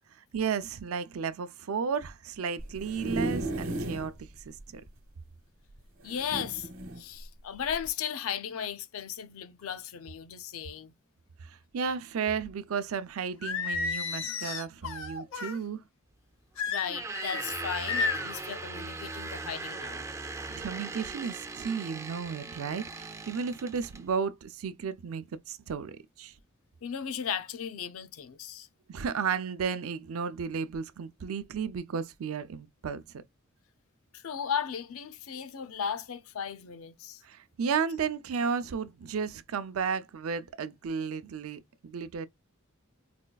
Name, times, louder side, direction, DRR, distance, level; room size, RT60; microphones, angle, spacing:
voice 1, 0.3-4.8 11.4-15.8 20.5-26.3 28.9-33.0 37.2-42.3, right 6 dB, 90° right, 0.4 m, -33 dB
sound 1, 2.6-4.1 4.6-4.7 4.9-5.0 6.1-7.0 7.7-7.9, right 2 dB, 65° right, 0.9 m, -34 dB
voice 2, 6.0-6.7 7.0-10.9 16.7-20.0 26.8-28.7 34.1-37.2, left 8 dB, 85° left, 0.5 m, -36 dB
Singing, 13.4-15.6 16.6-17.4 17.9-18.4, left 5 dB, 65° left, 0.8 m, -32 dB
sound 2, 16.8-24.0, right 3 dB, 15° right, 0.3 m, -39 dB
4.2 x 2.3 x 2.2 m
head